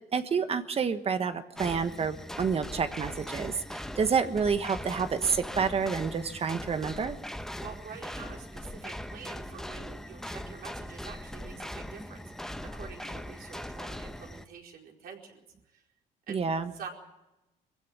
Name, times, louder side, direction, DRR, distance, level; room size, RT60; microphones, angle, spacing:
voice 1, 0.1-7.2 16.3-16.7, right 6 dB, 35° right, 9 dB, 1.3 m, -29 dB
sound 1, 1.6-14.5, left 1 dB, 5° left, 1.0 m, -40 dB
voice 2, 7.6-12.2 12.6-15.4 15.7-15.8 16.3-16.4 16.7-16.9, right 6 dB, 60° right, 1 dB, 4.6 m, -46 dB
22.5 x 15.5 x 9.2 m, 0.96 s
cardioid pair, 110°, 17 cm